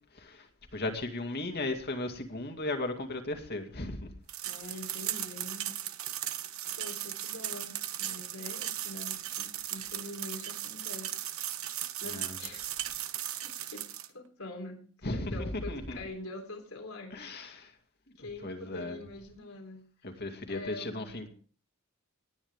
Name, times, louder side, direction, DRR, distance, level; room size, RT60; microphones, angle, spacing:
voice 1, 0.1-4.1 12.1-12.4 15.0-16.0 17.1-17.7 18.4-19.0 20.0-21.3, left 2 dB, 50° left, 5 dB, 2.2 m, -36 dB
sound 1, 4.3-14.1, right 12 dB, 80° right, 1.0 m, -37 dB
voice 2, 4.5-5.7 6.8-11.7 12.0-12.7 13.4-14.8 15.3-17.7 18.2-19.9 20.5-21.3, left 2 dB, 85° left, 3 dB, 3.6 m, -45 dB
19.0 x 9.8 x 3.6 m, 0.42 s
head